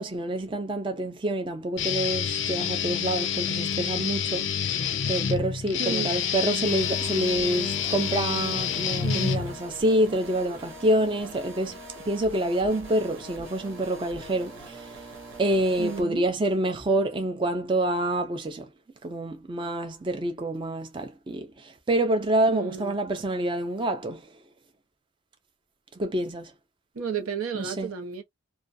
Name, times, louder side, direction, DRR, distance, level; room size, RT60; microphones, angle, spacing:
voice 1, 0.0-11.8 12.1-15.0 15.4-18.7 19.0-24.3 26.0-26.5 27.5-27.9, right 1 dB, 25° right, 0.3 m, -27 dB
Guitar, 1.8-9.8, left 7 dB, 60° left, 0.4 m, -28 dB
voice 2, 5.8-6.2 9.0-9.4 15.8-16.2 22.5-22.9 26.9-28.2, right 6 dB, 90° right, 0.7 m, -32 dB
sound 1, 6.6-16.0, right 2 dB, 70° right, 1.0 m, -43 dB
2.4 x 2.1 x 2.5 m
head